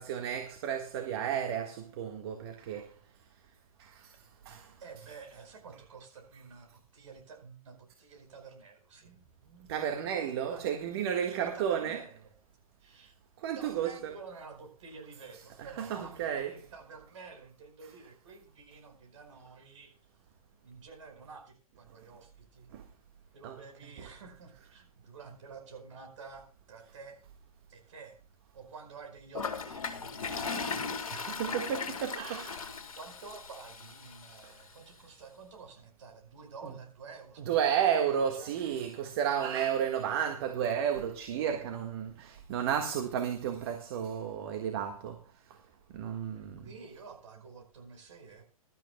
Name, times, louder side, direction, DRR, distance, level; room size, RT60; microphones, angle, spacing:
voice 1, 0.0-3.0 3.8-4.8 9.1-9.2 9.5-12.0 13.4-14.1 15.8-16.6 22.7-22.9 23.4-23.6 31.1-32.7 34.4-34.5 37.4-45.6 45.9-46.7, right 8 dB, 40° right, 1.6 m, -32 dB
voice 2, 4.8-9.1 10.5-10.7 11.4-12.3 12.8-13.1 13.5-19.9 20.6-22.7 23.3-27.2 27.7-28.2 28.5-32.6 32.9-38.6 46.3-48.4, right 4 dB, 55° right, 4.8 m, -50 dB
Toilet flush, 29.3-34.4, left 5 dB, 65° left, 2.0 m, -37 dB
22.0 x 12.5 x 2.2 m
figure-of-eight pair, 120°, 19 cm